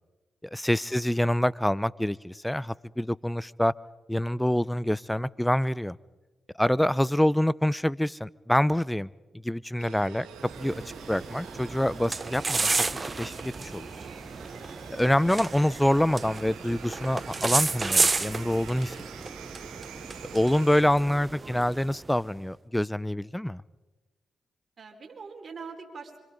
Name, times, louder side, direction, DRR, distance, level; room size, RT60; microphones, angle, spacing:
voice 1, 0.5-3.7 4.1-6.0 6.6-9.1 9.4-10.3 10.6-10.7 11.1-13.9 14.9-19.0 20.3-23.6, left 1 dB, 10° left, 21 dB, 0.7 m, -26 dB
sound 1, 9.8-20.8, right 9 dB, 85° right, 1.8 m, -46 dB
sound 2, 10.4-22.2, right 3 dB, 35° right, 0.8 m, -32 dB
voice 2, 24.8-26.2, right 5 dB, 55° right, 3 dB, 4.6 m, -44 dB
26.0 x 26.0 x 5.3 m, 1.2 s
supercardioid pair, 45°, 0 cm